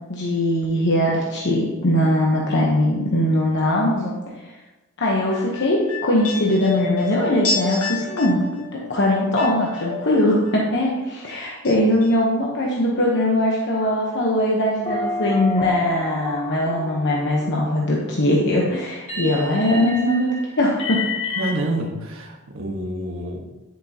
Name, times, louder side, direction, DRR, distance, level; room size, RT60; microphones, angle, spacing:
voice 1, 0.1-4.2 4.4-4.5 5.0-8.4 8.9-20.3 20.6-21.0, left 1 dB, 55° left, -3 dB, 1.1 m, -21 dB
sound 1, 5.3-10.5 10.8-11.7 12.0-12.1, left 4 dB, 85° left, 1.5 m, -29 dB
sound 2, 13.8-14.3 14.8-17.9 19.1-21.5, left 2 dB, 30° left, 2.0 m, -31 dB
voice 2, 21.4-23.4, right 1 dB, 65° right, 1 dB, 1.4 m, -27 dB
9.9 x 7.2 x 2.9 m, 1.1 s
head